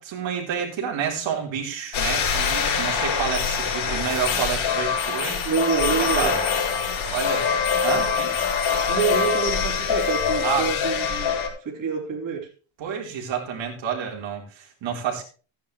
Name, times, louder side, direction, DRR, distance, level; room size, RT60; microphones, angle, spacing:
voice 1, 0.0-5.5 6.0-6.5 6.8-7.5 7.8-8.5 10.4-10.7 12.8-15.2, right 7 dB, 65° right, 4.1 m, -29 dB
sound 1, 1.9-11.5, left 6 dB, 70° left, 4.8 m, -24 dB
voice 2, 5.4-6.3 8.9-11.3 11.6-12.5, right 7 dB, 40° right, 3.9 m, -27 dB
15.0 x 10.0 x 3.2 m
cardioid pair, 160°, 48 cm